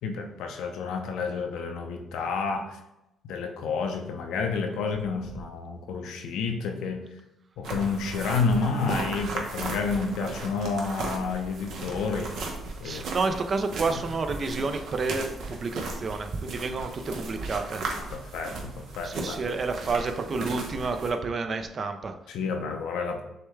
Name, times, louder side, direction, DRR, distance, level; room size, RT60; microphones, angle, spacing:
voice 1, 0.0-2.8 3.3-7.0 7.6-12.3 12.8-13.0 13.9-14.0 18.0-19.4 22.3-23.2, left 4 dB, 85° left, 4 dB, 0.6 m, -30 dB
sound 1, 7.6-21.1, right 3 dB, 75° right, 0.8 m, -36 dB
voice 2, 12.8-17.8 19.0-22.1, right 4 dB, 45° right, 7 dB, 0.5 m, -30 dB
6.4 x 2.2 x 3.2 m, 0.88 s
cardioid pair, 90°, 0 cm